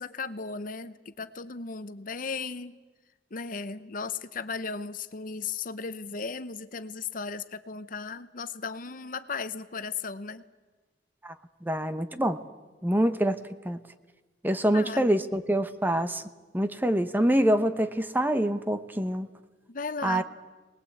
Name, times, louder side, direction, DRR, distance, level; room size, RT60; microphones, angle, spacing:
voice 1, 0.0-2.8 3.3-10.4 14.7-15.0 19.7-20.2, left 5 dB, 50° left, 12 dB, 0.9 m, -36 dB
voice 2, 11.6-12.4 12.8-13.3 13.6-13.8 14.4-16.2 16.5-19.3 20.0-20.2, right 1 dB, 10° right, 10 dB, 0.9 m, -25 dB
23.5 x 20.0 x 8.5 m, 1.3 s
head